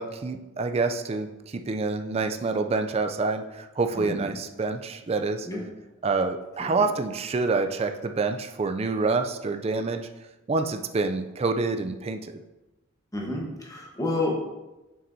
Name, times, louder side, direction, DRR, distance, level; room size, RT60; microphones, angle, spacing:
voice 1, 0.0-5.5 6.0-10.1 10.5-12.4, right 3 dB, 30° right, 7 dB, 0.4 m, -27 dB
voice 2, 4.0-4.3 5.5-5.6 13.1-14.4, left 2 dB, 15° left, -1 dB, 1.1 m, -29 dB
7.2 x 5.9 x 2.7 m, 1.0 s
head